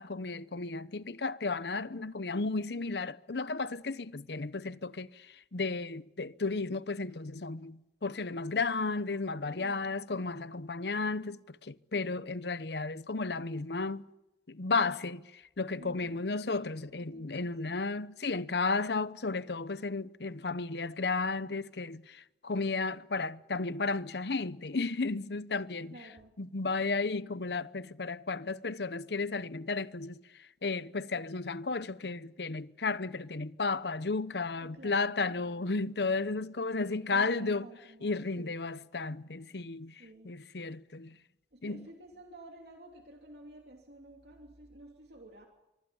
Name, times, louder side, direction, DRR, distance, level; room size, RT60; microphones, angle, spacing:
voice 1, 0.0-5.1 5.5-14.0 14.5-15.2 15.6-25.9 26.4-30.2 30.6-37.7 38.0-39.9 40.2-41.2 41.6-41.9, left 3 dB, 75° left, 0.9 m, -33 dB
voice 2, 9.4-10.1 15.8-16.4 17.0-17.8 19.5-19.6 25.9-26.3 34.6-35.7 36.6-38.6 40.0-40.3 41.5-45.5, right 1 dB, 70° right, 3.0 m, -52 dB
25.0 x 24.5 x 7.1 m
head